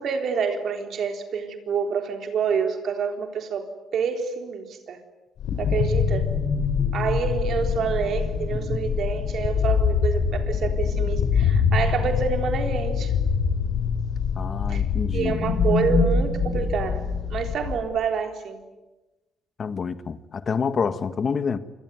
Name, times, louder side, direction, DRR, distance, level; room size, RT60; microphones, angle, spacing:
voice 1, 0.0-3.7 3.9-5.0 5.6-6.3 6.9-13.1 14.7-14.8 15.1-17.0 17.3-18.6, right 6 dB, 65° right, 3.8 m, -27 dB
sound 1, 5.4-17.8, left 6 dB, 75° left, 5.5 m, -24 dB
voice 2, 14.3-15.4 19.6-21.6, left 5 dB, 45° left, 1.5 m, -27 dB
27.5 x 23.0 x 9.4 m
cardioid pair, 90°, 0 cm